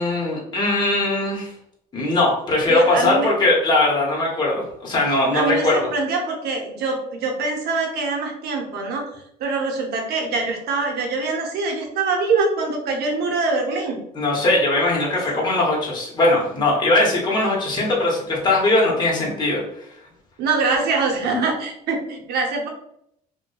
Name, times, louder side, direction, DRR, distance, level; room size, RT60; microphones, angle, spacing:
voice 1, 0.0-1.5 1.9-5.9 14.2-19.6, left 2 dB, 25° left, -4 dB, 0.8 m, -20 dB
voice 2, 2.7-3.3 5.3-14.0 15.3-15.5 20.4-22.7, right 4 dB, 75° right, 1 dB, 0.7 m, -24 dB
2.6 x 2.2 x 2.2 m, 0.74 s
cardioid pair, 110°, 17 cm